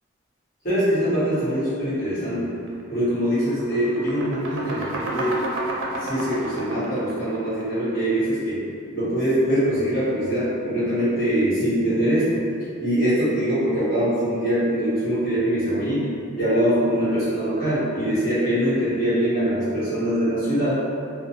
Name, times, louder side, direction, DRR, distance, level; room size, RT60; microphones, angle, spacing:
voice 1, 0.6-2.5 2.9-5.4 6.0-8.6 8.9-12.3 12.8-16.1 16.3-20.8, equal, 45° left, -14 dB, 1.4 m, -23 dB
sound 1, 2.6-2.8 3.2-8.1, right 2 dB, 65° right, 0.4 m, -31 dB
2.6 x 2.1 x 2.7 m, 2.4 s
head